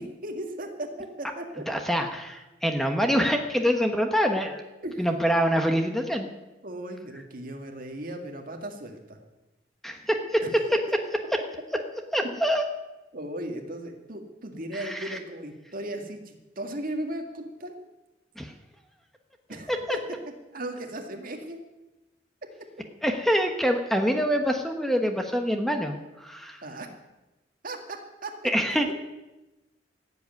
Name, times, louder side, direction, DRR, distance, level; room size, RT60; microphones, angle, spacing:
voice 1, 0.0-1.6 4.8-5.1 6.6-9.2 10.4-10.5 13.1-17.8 19.5-20.0 20.5-21.6 26.6-26.9 27.6-28.3 28.7-28.9, right 1 dB, 50° right, 4 dB, 2.1 m, -36 dB
voice 2, 1.7-4.6 5.0-6.3 9.8-10.4 10.7-10.8 12.1-12.6 14.7-15.2 18.4-18.5 19.7-20.0 23.0-26.6 28.4-28.9, equal, ahead, 4 dB, 1.1 m, -25 dB
15.5 x 8.0 x 9.5 m, 1.0 s
head